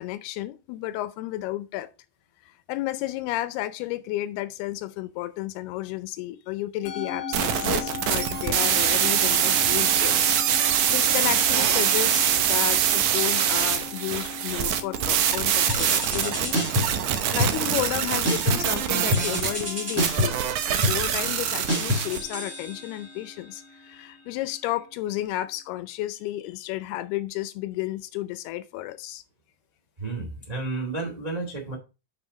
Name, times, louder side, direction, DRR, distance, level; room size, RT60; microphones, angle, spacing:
voice 1, 0.0-1.9 2.7-10.3 10.6-17.0 17.3-29.2, left 15 dB, 80° left, 2.5 m, -32 dB
Musical instrument, 6.9-25.4, left 5 dB, 65° left, 2.1 m, -40 dB
sound 1, 7.3-22.2, right 9 dB, 75° right, 1.8 m, -24 dB
sound 2, 15.7-17.0 17.4-18.0 18.2-18.8 19.1-23.1, left 1 dB, 5° right, 1.9 m, -28 dB
voice 2, 30.0-31.7, right 3 dB, 30° right, 0.6 m, -31 dB
6.8 x 5.9 x 5.1 m
omnidirectional pair, 4.7 m